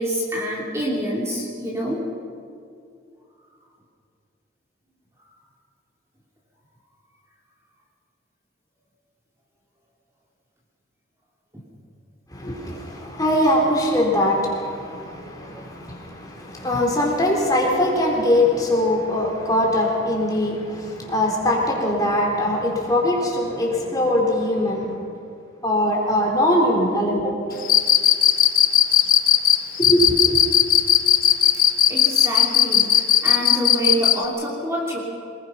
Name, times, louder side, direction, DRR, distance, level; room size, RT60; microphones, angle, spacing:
voice 1, 0.0-2.0 31.9-35.0, right 1 dB, 15° right, -3 dB, 3.0 m, -26 dB
voice 2, 12.3-25.0 25.6-27.4 29.8-30.4, left 1 dB, 20° left, -2 dB, 3.8 m, -21 dB
Cricket, 27.6-34.2, left 10 dB, 45° left, 0.9 m, -16 dB
24.5 x 20.5 x 5.8 m, 2.4 s
head